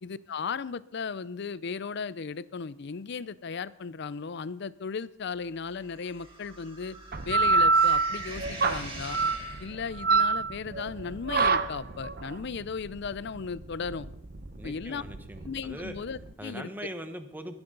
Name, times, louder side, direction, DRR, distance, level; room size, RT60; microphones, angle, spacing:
voice 1, 0.0-7.0 7.3-9.2 9.6-14.1 14.6-15.0 15.4-16.7, left 5 dB, 60° left, 18 dB, 0.5 m, -36 dB
sound 1, 5.7-10.0, right 2 dB, 30° right, 3.2 m, -44 dB
sound 2, 7.1-16.3, right 4 dB, 50° right, 0.8 m, -27 dB
voice 2, 14.6-15.9 16.4-17.6, equal, 10° right, 7 dB, 1.2 m, -40 dB
22.5 x 10.5 x 3.9 m, 0.75 s
head